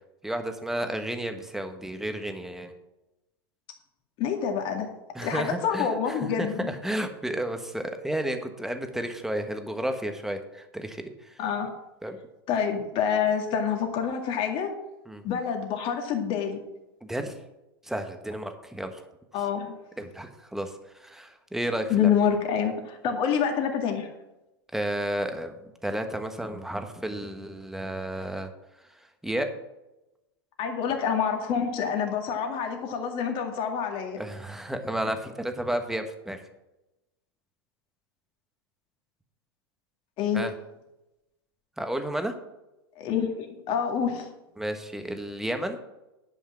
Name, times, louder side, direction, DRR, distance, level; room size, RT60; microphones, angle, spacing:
voice 1, 0.2-2.7 5.1-11.4 12.0-12.2 15.1-15.2 17.0-17.4 17.8-19.0 20.0-22.1 24.7-28.5 28.8-29.5 34.2-36.4 40.3-40.5 41.8-42.4 44.6-45.8, right 1 dB, 5° right, 6 dB, 1.3 m, -32 dB
voice 2, 4.2-4.9 5.2-6.7 11.4-11.7 12.5-14.7 15.2-16.6 19.3-19.8 21.9-24.1 30.6-34.2 40.2-40.4 43.0-44.3, left 7 dB, 45° left, 3 dB, 2.2 m, -27 dB
10.5 x 5.5 x 7.1 m, 0.96 s
hypercardioid pair, 100°, 13 cm